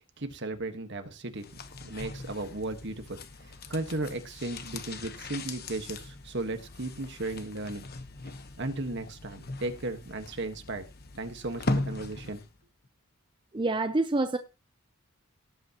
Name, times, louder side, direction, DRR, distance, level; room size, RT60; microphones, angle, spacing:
voice 1, 0.2-1.4 1.8-3.2 3.4-7.9 8.6-10.8 11.2-12.4, right 2 dB, 55° right, 1.5 m, -35 dB
sound 1, 1.4-12.6 12.8-12.9, left 2 dB, 45° left, 1.1 m, -39 dB
voice 2, 13.5-14.4, right 2 dB, 20° right, 0.5 m, -26 dB
18.0 x 8.4 x 2.9 m
head